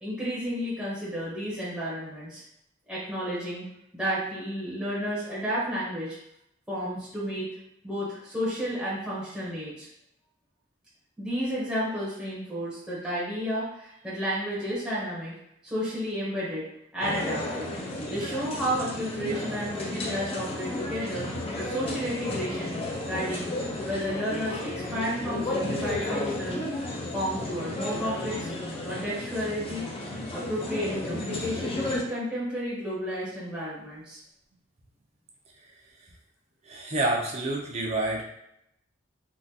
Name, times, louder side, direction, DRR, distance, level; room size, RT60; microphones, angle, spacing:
voice 1, 0.0-2.4 2.9-3.6 3.9-6.2 6.7-7.5 7.8-9.9 11.2-15.3 15.6-16.6 16.9-17.7 18.1-21.3 21.6-22.8 23.1-23.5 23.8-26.6 27.1-28.5 28.8-29.8 30.3-34.2, equal, 5° right, -9 dB, 0.8 m, -32 dB
sound 1, 17.0-32.0, left 1 dB, 30° left, 0.5 m, -33 dB
voice 2, 36.7-38.2, right 2 dB, 35° right, -1 dB, 0.6 m, -28 dB
3.6 x 2.4 x 2.7 m, 0.79 s
head